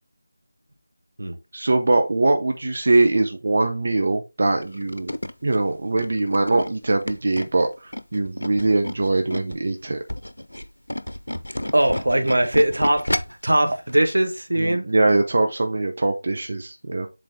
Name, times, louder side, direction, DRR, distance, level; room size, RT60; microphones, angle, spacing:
voice 1, 1.5-10.0 14.6-17.1, right 2 dB, 50° right, 1.0 m, -22 dB
Tools, 4.6-9.6 10.0-13.5 13.9-14.1 14.4-14.5, left 1 dB, 90° left, 0.7 m, -31 dB
voice 2, 11.7-14.9, right 1 dB, 80° right, 1.3 m, -21 dB
7.6 x 3.8 x 3.7 m
figure-of-eight pair, 165°, 0 cm